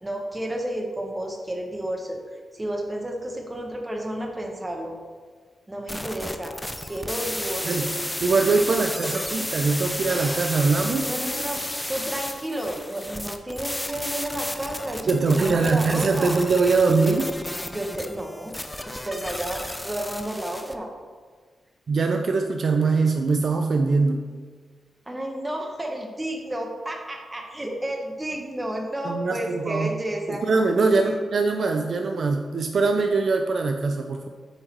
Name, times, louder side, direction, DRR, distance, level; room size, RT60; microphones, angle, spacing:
voice 1, 0.0-2.2 2.5-4.9 5.7-6.5 6.8-7.9 8.7-9.2 11.0-16.4 17.0-17.1 17.6-18.6 18.8-20.9 25.1-30.4 31.0-31.2, right 1 dB, 15° right, 2 dB, 1.1 m, -31 dB
sound 1, 5.9-20.7, left 1 dB, 10° left, 0.5 m, -33 dB
voice 2, 8.2-11.1 15.1-17.3 21.9-24.2 29.0-29.9 30.3-34.3, right 4 dB, 60° right, 4 dB, 0.5 m, -22 dB
8.1 x 3.9 x 4.5 m, 1.5 s
cardioid pair, 95°, 0 cm